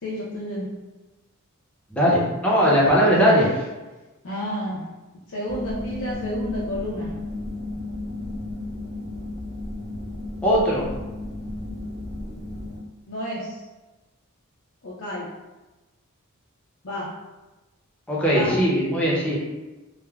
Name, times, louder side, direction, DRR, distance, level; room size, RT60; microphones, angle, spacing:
voice 1, 0.0-0.7 3.4-3.5 4.2-4.9 5.3-7.1 13.1-13.7 14.8-15.3 16.8-17.1 18.3-18.7, equal, 65° left, -7 dB, 0.5 m, -31 dB
voice 2, 1.9-3.5 10.4-10.8 18.1-19.4, equal, 5° left, -6 dB, 0.6 m, -19 dB
sound 1, 5.5-12.8, left 2 dB, 45° right, 0.7 m, -33 dB
3.3 x 2.1 x 2.3 m, 1.1 s
head